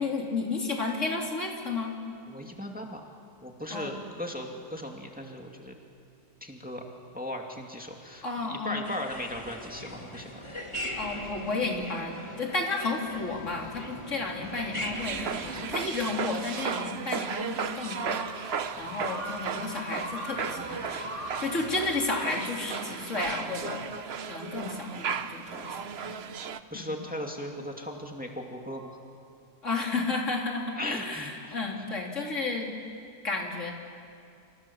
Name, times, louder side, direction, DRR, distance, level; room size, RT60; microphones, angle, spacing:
voice 1, 0.0-1.9 3.7-3.9 8.2-8.9 11.0-21.1 21.4-23.8 24.3-26.2 26.7-27.0 29.6-32.7 33.2-33.7, left 3 dB, 50° left, 0 dB, 3.7 m, -32 dB
voice 2, 2.3-3.1 3.4-5.8 6.4-6.8 7.1-10.4 21.4-21.7 26.7-29.0 30.8-31.6, left 1 dB, 5° right, 1 dB, 2.3 m, -37 dB
sound 1, 8.8-16.2, left 1 dB, 20° left, 2.0 m, -40 dB
sound 2, 14.3-22.0, equal, 30° right, 8.2 m, -42 dB
sound 3, 14.9-26.6, right 7 dB, 50° right, 1.0 m, -35 dB
29.5 x 28.0 x 7.2 m, 2.4 s
omnidirectional pair, 1.6 m